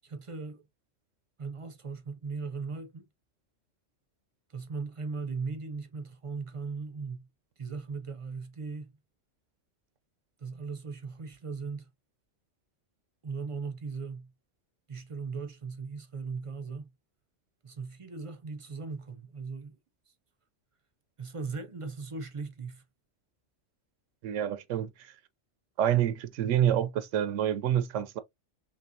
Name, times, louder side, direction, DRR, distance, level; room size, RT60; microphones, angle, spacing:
voice 1, 0.0-0.6 1.4-3.1 4.5-7.3 7.6-8.9 10.4-11.9 13.2-14.3 14.9-16.9 17.6-19.8 21.2-22.8, right 4 dB, 40° right, 0.4 m, -38 dB
voice 2, 24.2-25.1 25.8-28.2, right 10 dB, 90° right, 0.9 m, -27 dB
5.8 x 2.2 x 2.6 m
omnidirectional pair, 1.2 m